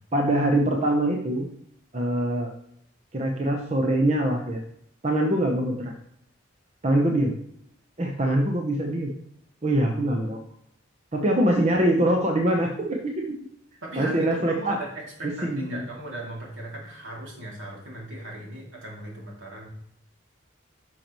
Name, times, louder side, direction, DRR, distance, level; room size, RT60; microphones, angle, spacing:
voice 1, 0.1-1.5 1.9-2.5 3.1-4.6 5.0-5.9 6.8-7.3 8.0-9.1 9.6-10.4 11.1-13.2 14.0-14.8 15.2-15.8, right 1 dB, 35° right, 1 dB, 0.8 m, -23 dB
voice 2, 13.8-19.7, right 1 dB, 70° right, -2 dB, 2.6 m, -38 dB
10.5 x 5.8 x 3.0 m, 0.72 s
head